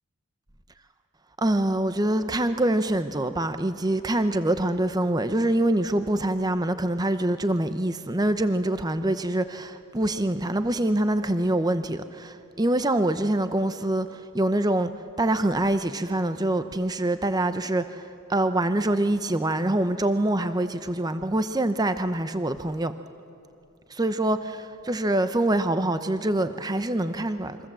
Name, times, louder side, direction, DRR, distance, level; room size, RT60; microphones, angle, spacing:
voice 1, 1.4-14.9 15.2-22.9 23.9-27.6, right 1 dB, 20° right, 10 dB, 0.7 m, -25 dB
27.0 x 24.0 x 7.6 m, 2.7 s
head